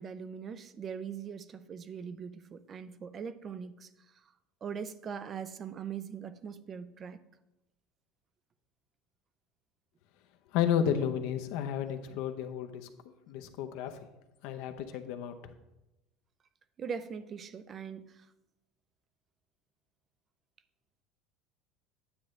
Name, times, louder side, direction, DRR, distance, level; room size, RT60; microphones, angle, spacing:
voice 1, 0.0-3.9 4.6-7.2 16.8-18.3, right 7 dB, 25° right, 0.4 m, -41 dB
voice 2, 10.5-12.9 13.3-14.0 14.4-15.5, left 9 dB, 65° left, 0.7 m, -32 dB
9.7 x 7.7 x 3.2 m
cardioid pair, 165°, 0 cm